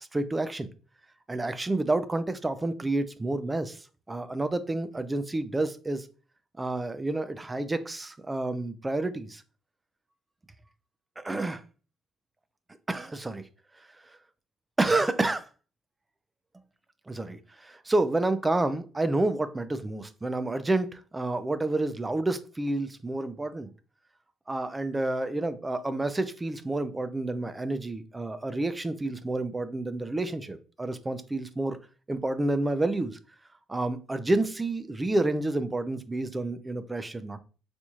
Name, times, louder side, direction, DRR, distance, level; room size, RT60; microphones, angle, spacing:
voice 1, 0.1-0.7 1.3-6.1 6.6-9.4 11.2-11.6 12.9-13.4 14.8-15.5 17.1-23.7 24.5-31.8 32.1-33.2 33.7-37.4, right 2 dB, 15° right, 12 dB, 0.3 m, -29 dB
4.1 x 2.9 x 2.3 m, 0.36 s
cardioid pair, 145°, 0 cm